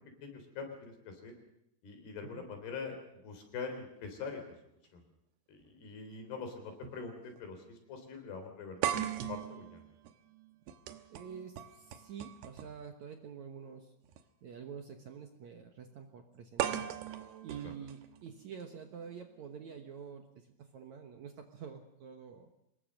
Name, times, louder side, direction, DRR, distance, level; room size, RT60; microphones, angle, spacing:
voice 1, 0.2-1.3 1.8-4.4 4.9-5.0 5.5-9.8 17.6-17.7, left 5 dB, 75° left, 5 dB, 5.6 m, -44 dB
sound 1, 5.6-5.7 6.8-7.0 7.4-7.5 8.8-12.9 14.0-14.2 16.6-18.6, right 11 dB, 85° right, 3.2 m, -38 dB
voice 2, 10.9-13.9 14.4-16.9 17.2-22.5, right 7 dB, 60° right, 5 dB, 2.1 m, -48 dB
25.0 x 20.5 x 6.5 m, 0.81 s
omnidirectional pair, 4.7 m